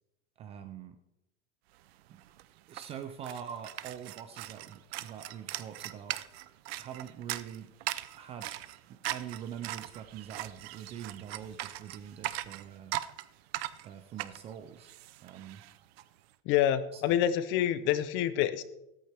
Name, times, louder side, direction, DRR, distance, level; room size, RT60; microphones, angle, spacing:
voice 1, 0.4-1.0 2.1-2.2 2.7-6.2 6.8-7.7 8.1-8.6 8.9-13.0 13.8-14.9 15.2-15.6 16.9-17.0, right 9 dB, 20° right, 9 dB, 0.4 m, -44 dB
sound 1, 1.9-2.0 2.2-16.0, right 15 dB, 65° right, 0.7 m, -40 dB
voice 2, 16.5-18.6, left 11 dB, 35° left, 14 dB, 0.7 m, -27 dB
14.0 x 13.5 x 3.5 m, 0.87 s
supercardioid pair, 160°, 33 cm